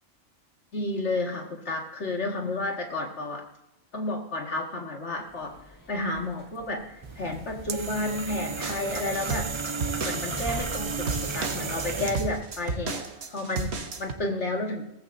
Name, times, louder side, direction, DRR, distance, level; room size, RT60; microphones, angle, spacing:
voice 1, 0.7-3.5 3.9-5.6 5.9-9.5 10.0-14.8, left 2 dB, 60° left, 1 dB, 2.2 m, -31 dB
sound 1, 5.2-13.0, left 1 dB, 15° left, 1.6 m, -46 dB
sound 2, 7.0-12.4, right 5 dB, 35° right, 0.5 m, -34 dB
sound 3, 8.6-14.1, right 4 dB, 60° right, 1.4 m, -34 dB
19.0 x 14.5 x 2.7 m, 0.91 s
omnidirectional pair, 1.3 m